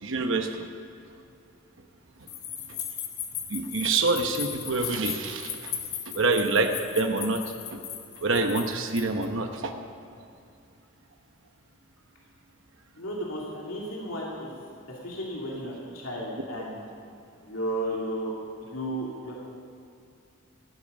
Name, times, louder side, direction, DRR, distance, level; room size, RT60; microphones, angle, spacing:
voice 1, 0.0-0.6 2.7-2.8 3.5-5.7 6.1-7.4 7.7-7.8 8.2-9.7 15.5-15.7, right 3 dB, 65° right, 5 dB, 1.0 m, -26 dB
sound 1, 2.3-9.3, left 9 dB, 50° left, 1.7 m, -37 dB
voice 2, 12.9-14.5 14.9-16.8 17.4-18.3 18.6-19.3, equal, 80° left, -4 dB, 2.5 m, -33 dB
17.5 x 12.0 x 5.4 m, 2.5 s
head